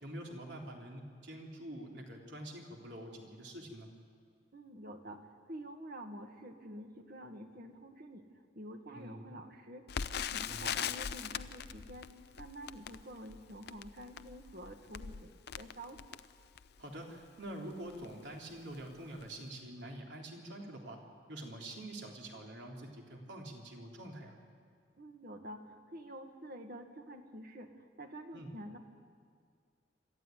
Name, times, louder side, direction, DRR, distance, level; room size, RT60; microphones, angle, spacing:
voice 1, 0.0-3.9 8.9-9.3 10.5-10.8 16.8-21.0 21.3-24.3 28.3-28.5, right 1 dB, 85° right, 0 dB, 3.6 m, -46 dB
voice 2, 4.5-8.3 8.6-12.1 12.4-16.0 25.0-28.8, equal, 60° right, 5 dB, 1.8 m, -48 dB
Crackle, 9.9-16.9 17.5-17.6 17.9-18.1 18.7-18.9 19.2-19.3, left 8 dB, 65° left, 0.6 m, -41 dB
27.0 x 13.5 x 9.4 m, 2.1 s
head